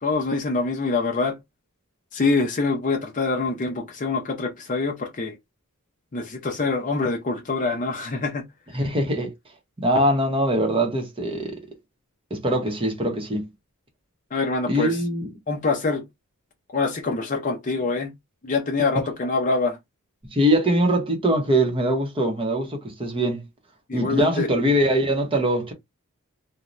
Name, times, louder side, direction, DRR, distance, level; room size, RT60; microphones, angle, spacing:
voice 1, 0.0-1.4 2.1-5.4 6.1-8.4 14.3-15.0 15.5-16.0 16.7-18.1 18.4-19.8 23.9-24.5, left 3 dB, 35° left, 0.5 m, -25 dB
voice 2, 8.7-9.3 9.8-11.6 12.3-13.5 14.7-15.3 20.3-23.4 23.9-25.7, right 1 dB, 25° right, 0.8 m, -22 dB
2.6 x 2.2 x 3.1 m
head